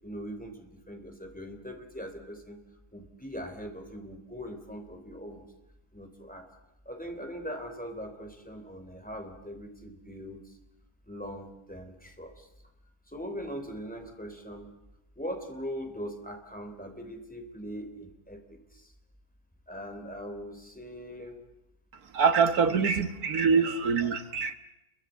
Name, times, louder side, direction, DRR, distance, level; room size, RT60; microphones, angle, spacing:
voice 1, 0.0-2.6 2.9-5.5 5.9-6.4 6.8-10.6 11.1-12.5 13.1-14.7 15.1-18.9 19.7-21.4 22.7-22.8 24.0-24.2, equal, 5° left, 5 dB, 3.4 m, -41 dB
voice 2, 22.1-24.5, right 5 dB, 85° right, 9 dB, 1.9 m, -24 dB
29.0 x 23.0 x 8.2 m, 0.90 s
omnidirectional pair, 1.5 m